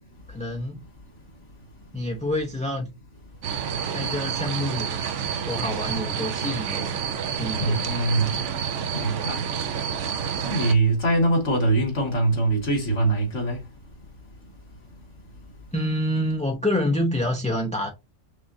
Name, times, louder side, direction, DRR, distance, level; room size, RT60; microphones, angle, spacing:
voice 1, 0.3-0.8 1.9-2.9 3.9-5.0 5.4-7.0 7.4-7.8 15.7-17.9, left 1 dB, 10° left, 0.5 m, -27 dB
sound 1, 3.4-10.7, right 7 dB, 75° right, 1.0 m, -29 dB
voice 2, 7.6-8.3 8.9-9.5 10.4-13.6, right 2 dB, 75° left, 2.1 m, -23 dB
6.2 x 2.5 x 2.7 m
omnidirectional pair, 1.3 m